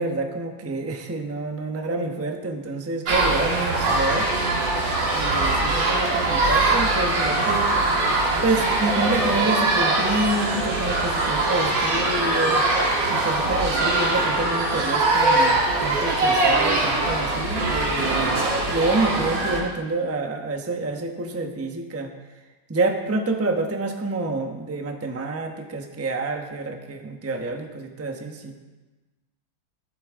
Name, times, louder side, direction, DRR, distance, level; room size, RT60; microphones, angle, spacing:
voice 1, 0.0-4.3 5.1-7.8 8.4-12.6 13.1-18.4 18.7-22.1 22.7-28.6, right 2 dB, 15° right, 3 dB, 0.6 m, -28 dB
sound 1, 3.1-19.6, right 2 dB, 65° right, 2.6 m, -22 dB
14.0 x 11.5 x 3.7 m, 1.2 s
omnidirectional pair, 2.1 m